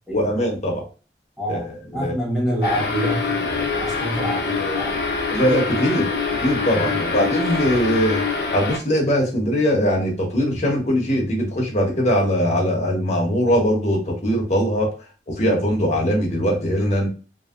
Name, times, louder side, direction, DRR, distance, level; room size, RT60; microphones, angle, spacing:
voice 1, 0.1-0.8 1.5-1.6 1.9-2.1 5.3-6.1 6.4-8.2 8.5-14.9 15.4-17.1, equal, 40° left, -1 dB, 0.9 m, -21 dB
voice 2, 1.4-5.0 6.8-7.0, equal, ahead, -4 dB, 1.1 m, -27 dB
sound 1, 2.6-8.8, left 4 dB, 65° left, 0.7 m, -25 dB
2.8 x 2.7 x 2.4 m, 0.34 s
head